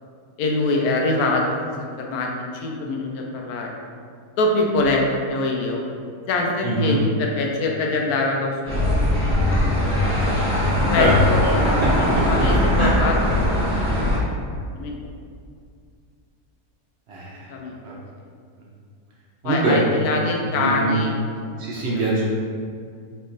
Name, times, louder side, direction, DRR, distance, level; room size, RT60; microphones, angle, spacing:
voice 1, 0.4-1.4 1.8-3.7 4.4-5.8 6.3-9.0 9.7-10.3 10.9-14.2 14.8-14.9 17.3-17.8 19.4-21.1 21.7-21.8, left 2 dB, 75° left, 0 dB, 1.0 m, -24 dB
voice 2, 6.6-7.0 11.0-11.2 11.5-12.9 17.1-17.5 17.8-18.0 19.4-19.8 20.1-21.0 21.5-22.3, right 2 dB, 65° right, -5 dB, 0.7 m, -24 dB
sound 1, 8.7-14.2, left 1 dB, 5° right, 0.6 m, -20 dB
4.2 x 2.9 x 2.5 m, 2.2 s
omnidirectional pair, 1.7 m